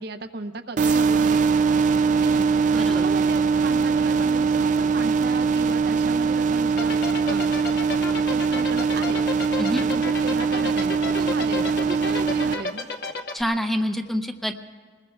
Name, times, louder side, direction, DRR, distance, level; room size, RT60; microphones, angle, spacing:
voice 1, 0.0-1.5 2.0-2.5 2.8-7.0 7.2-7.5 8.3-9.2 9.9-12.9, right 2 dB, 60° right, 6 dB, 0.7 m, -35 dB
sound 1, 0.8-12.5, right 5 dB, 45° right, 0.4 m, -22 dB
voice 2, 2.7-3.1 9.6-9.8 13.3-14.5, equal, ahead, 6 dB, 0.6 m, -26 dB
sound 2, 6.8-13.4, left 4 dB, 65° left, 1.0 m, -30 dB
26.0 x 20.5 x 2.3 m, 1.5 s
head